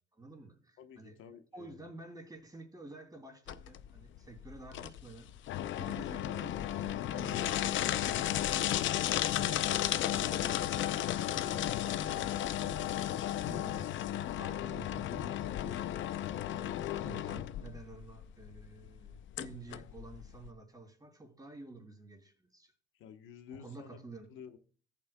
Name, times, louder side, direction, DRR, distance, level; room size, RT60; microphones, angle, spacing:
voice 1, 0.0-1.2 1.5-8.8 9.3-13.9 14.4-16.1 16.5-22.7 23.5-24.3, right 3 dB, 20° right, 2.8 m, -51 dB
voice 2, 0.8-1.9 23.0-24.0 24.3-24.6, left 8 dB, 90° left, 1.0 m, -51 dB
sound 1, 3.5-20.5, left 12 dB, 75° left, 0.5 m, -34 dB
14.5 x 8.5 x 2.2 m
cardioid pair, 90°, 20 cm